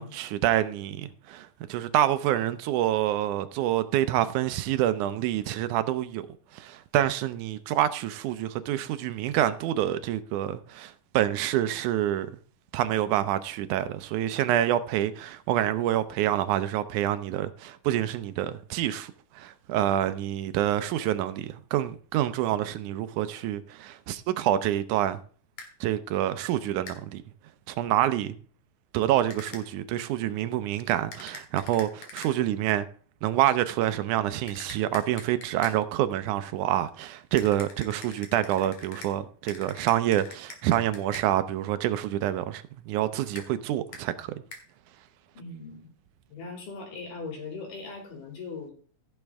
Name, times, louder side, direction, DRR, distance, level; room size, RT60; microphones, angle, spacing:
voice 1, 0.0-6.3 6.5-12.3 12.7-25.2 25.8-27.2 27.7-28.3 28.9-32.9 33.2-44.3, right 12 dB, 75° right, 2.0 m, -27 dB
sound 1, 25.6-25.7 26.9-27.0 29.3-29.6 31.1-32.3 34.5-35.8 37.4-39.1 39.5-41.3 43.3-43.5 43.9-44.0 44.5-44.6, left 4 dB, 55° left, 2.5 m, -44 dB
voice 2, 45.4-45.9 46.3-48.7, left 4 dB, 70° left, 4.2 m, -39 dB
15.5 x 6.4 x 3.5 m
omnidirectional pair, 3.9 m